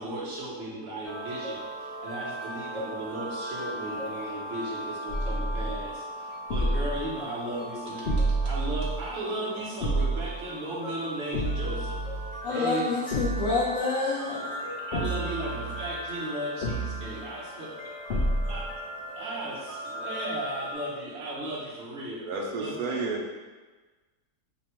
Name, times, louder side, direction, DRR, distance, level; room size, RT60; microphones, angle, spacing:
voice 1, 0.0-12.0 12.5-12.8 14.6-17.7 18.1-18.2 18.5-18.6 19.1-22.2 22.6-23.0, right 1 dB, 50° right, -6 dB, 1.0 m, -36 dB
sound 1, 1.0-20.7, equal, 35° left, 0.7 m, -39 dB
sound 2, 5.1-5.9 6.5-7.1 8.0-9.1 9.8-10.4 11.3-12.4 13.1-13.7 14.9-16.0 16.6-17.2 18.1-18.7, right 1 dB, 85° left, 0.5 m, -29 dB
voice 2, 12.4-14.5, left 3 dB, 65° left, -5 dB, 0.8 m, -28 dB
voice 3, 22.3-23.3, right 3 dB, 75° right, 0 dB, 1.0 m, -31 dB
3.3 x 2.2 x 4.3 m, 1.3 s
omnidirectional pair, 1.7 m